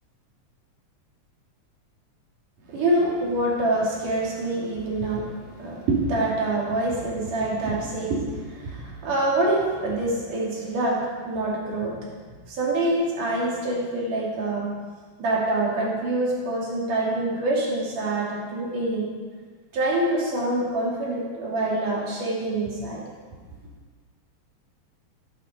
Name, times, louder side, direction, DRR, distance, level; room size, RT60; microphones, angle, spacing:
voice 1, 2.7-5.3 5.6-11.9 12.5-14.7 15.2-19.1 19.7-23.0, right 2 dB, 85° right, -4 dB, 4.4 m, -25 dB
16.0 x 12.0 x 5.4 m, 1.5 s
omnidirectional pair, 3.5 m